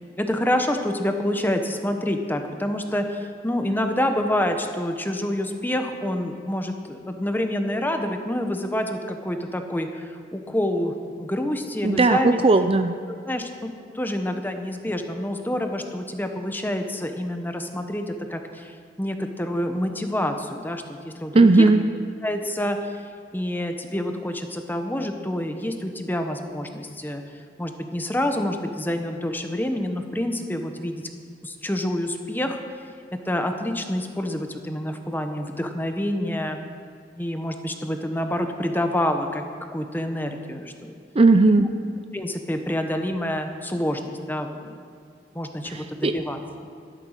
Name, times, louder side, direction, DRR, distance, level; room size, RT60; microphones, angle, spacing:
voice 1, 0.2-12.4 13.3-13.7 13.9-21.7 22.2-22.9 23.3-27.2 27.6-31.0 31.4-32.6 33.2-36.6 37.2-39.4 39.7-40.9 42.1-44.8 45.3-46.4, left 1 dB, 10° left, 5 dB, 1.0 m, -27 dB
voice 2, 11.8-13.0 21.3-21.8 41.1-41.7 45.7-46.2, right 3 dB, 35° right, 8 dB, 0.5 m, -17 dB
13.0 x 12.0 x 6.5 m, 2.4 s
head